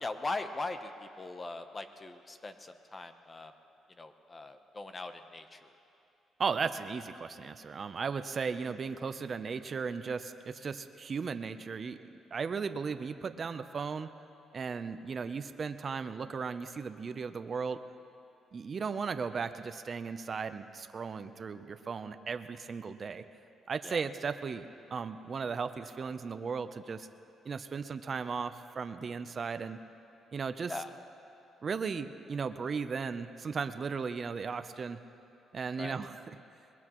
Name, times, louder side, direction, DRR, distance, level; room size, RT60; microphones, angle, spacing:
voice 1, 0.0-3.5 4.0-5.6 23.8-24.0 30.7-30.9 35.8-36.0, left 2 dB, 30° left, 8 dB, 0.8 m, -40 dB
voice 2, 6.4-12.0 12.3-14.1 14.5-17.8 18.5-23.2 23.7-27.1 27.4-29.8 30.3-30.7 31.6-35.0 35.5-36.4, right 5 dB, 45° right, 9 dB, 0.6 m, -36 dB
22.0 x 20.5 x 3.1 m, 2.7 s
cardioid pair, 90°, 0 cm